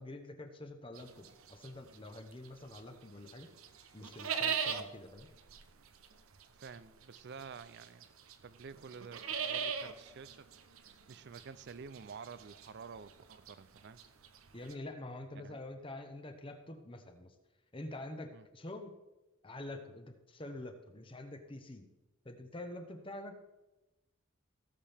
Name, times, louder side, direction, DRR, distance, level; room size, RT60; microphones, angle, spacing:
voice 1, 0.0-3.5 3.9-5.3 14.5-17.3 17.7-18.9 19.4-21.9 22.2-23.4, left 1 dB, 25° left, 6 dB, 1.0 m, -46 dB
sound 1, 1.0-3.0 3.3-14.7, right 7 dB, 85° right, 0.8 m, -40 dB
voice 2, 6.5-8.1 8.4-14.0 15.3-15.6 18.3-18.5, right 5 dB, 55° right, 16 dB, 0.4 m, -50 dB
17.5 x 7.5 x 3.5 m, 1.0 s
head